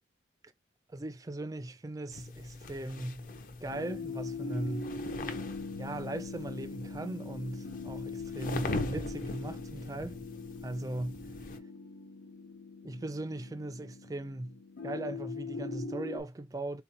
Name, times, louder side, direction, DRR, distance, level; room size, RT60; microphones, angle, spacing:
voice 1, 0.9-3.2 3.6-4.9 5.8-10.2 10.6-11.2 12.8-16.8, right 1 dB, 20° right, 0.3 m, -38 dB
sound 1, 2.1-11.6, left 2 dB, 45° left, 0.5 m, -41 dB
sound 2, 3.7-16.2, left 3 dB, 90° left, 0.8 m, -41 dB
3.8 x 2.8 x 2.5 m
head